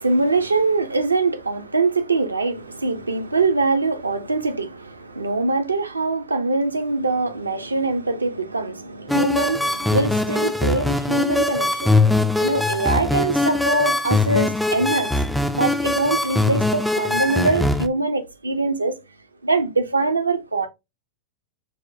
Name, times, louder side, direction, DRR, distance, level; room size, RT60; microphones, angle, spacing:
voice 1, 0.0-15.1 15.5-19.0 19.4-20.7, right 3 dB, 80° right, 0.5 m, -23 dB
sound 1, 9.1-17.9, left 2 dB, ahead, 0.3 m, -21 dB
4.7 x 2.1 x 2.5 m
figure-of-eight pair, 90°, 0 cm